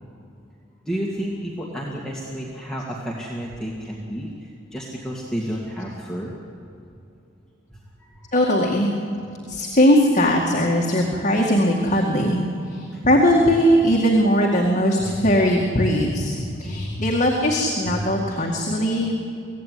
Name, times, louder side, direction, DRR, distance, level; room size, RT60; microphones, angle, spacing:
voice 1, 0.8-6.4 8.1-8.3 12.9-13.0 16.4-17.0 17.9-18.0, equal, 5° left, -4 dB, 2.3 m, -31 dB
voice 2, 8.3-8.9 9.5-19.2, equal, 40° left, -1 dB, 2.1 m, -20 dB
24.5 x 17.0 x 9.5 m, 2.7 s
head